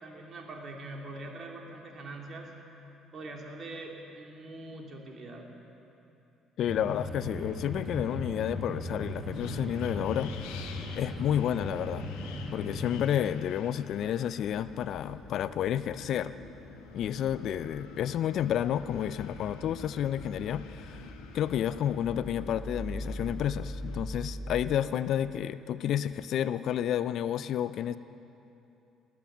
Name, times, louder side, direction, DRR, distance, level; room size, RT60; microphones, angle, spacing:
voice 1, 0.0-2.5 3.1-5.5, right 2 dB, 45° right, 0 dB, 2.5 m, -43 dB
voice 2, 6.6-10.6 11.0-12.0 12.5-16.3 16.9-21.0 21.3-28.0, left 10 dB, 65° left, 14 dB, 0.4 m, -30 dB
sound 1, 6.7-13.0, left 1 dB, 30° right, 1.4 m, -38 dB
Wind, 8.9-24.0, left 6 dB, 85° left, 0.9 m, -48 dB
sound 2, 14.1-24.6, equal, 20° left, 2.2 m, -44 dB
20.0 x 7.9 x 7.3 m, 2.9 s
supercardioid pair, 80°, 0 cm